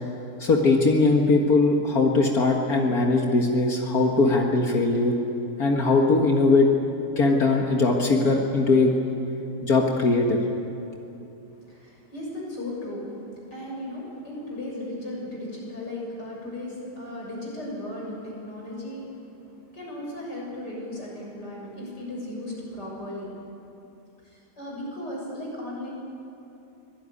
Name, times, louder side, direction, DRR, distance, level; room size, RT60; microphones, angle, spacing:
voice 1, 0.4-5.2 5.6-6.7 7.2-8.9 9.6-10.4, left 3 dB, 60° left, 1 dB, 2.1 m, -20 dB
voice 2, 11.6-13.1 13.5-19.3 19.7-23.3 24.2-25.9, left 1 dB, 85° left, -3 dB, 7.6 m, -36 dB
24.5 x 19.0 x 9.9 m, 2.9 s
omnidirectional pair, 1.8 m